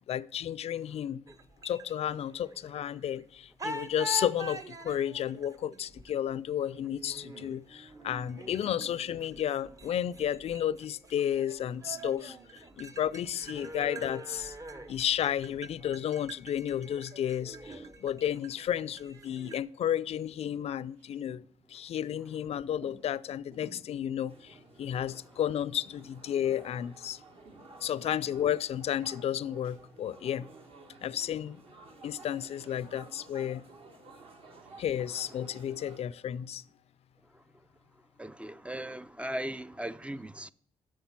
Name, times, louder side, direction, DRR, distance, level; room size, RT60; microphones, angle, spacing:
voice 1, 0.1-1.2 1.6-14.6 14.9-21.4 21.7-27.2 27.8-30.5 31.0-31.6 32.0-33.6 34.8-36.6, left 10 dB, 60° left, 0.4 m, -32 dB
sound 1, 1.3-3.2 3.6-19.6, right 2 dB, 30° right, 0.8 m, -45 dB
sound 2, 18.8-19.5 19.8-19.9 20.1-22.4 22.8-23.9 24.5-25.5 25.7-27.2 27.4-28.7 29.0-29.8, right 2 dB, 75° right, 3.7 m, -57 dB
sound 3, 24.3-36.0, right 3 dB, 55° right, 1.5 m, -54 dB
voice 2, 38.2-40.5, right 1 dB, 10° right, 0.3 m, -38 dB
8.0 x 6.5 x 5.8 m
cardioid pair, 80°, 12 cm